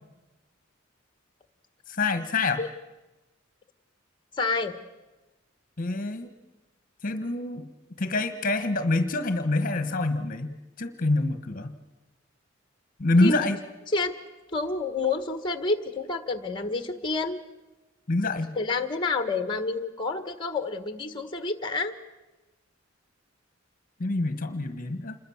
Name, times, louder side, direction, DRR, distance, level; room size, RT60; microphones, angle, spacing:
voice 1, 1.9-2.6 5.8-6.3 7.0-7.7 8.0-11.7 13.0-13.6 18.1-18.6 24.0-25.2, left 2 dB, 45° left, 10 dB, 1.4 m, -26 dB
voice 2, 4.4-4.7 13.2-13.4 13.9-14.1 14.5-17.4 18.5-21.9, left 3 dB, 25° left, 9 dB, 1.5 m, -28 dB
27.5 x 22.0 x 7.3 m, 1.1 s
head